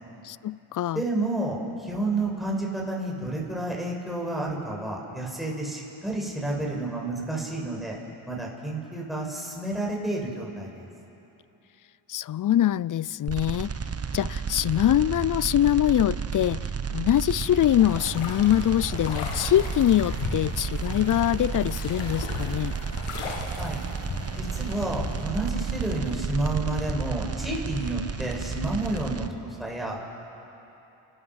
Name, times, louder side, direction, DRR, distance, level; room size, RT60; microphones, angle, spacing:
voice 1, 0.2-1.0 12.1-13.7 14.1-22.8, left 12 dB, 40° left, 21 dB, 0.4 m, -23 dB
voice 2, 0.9-8.0 8.2-10.9 23.6-23.8 24.3-30.0, right 2 dB, ahead, -2 dB, 6.5 m, -30 dB
sound 1, 13.3-29.3, right 6 dB, 30° right, 1.1 m, -32 dB
sound 2, 17.7-25.2, left 4 dB, 90° left, 2.1 m, -37 dB
29.5 x 14.0 x 6.4 m, 3.0 s
supercardioid pair, 45°, 50 cm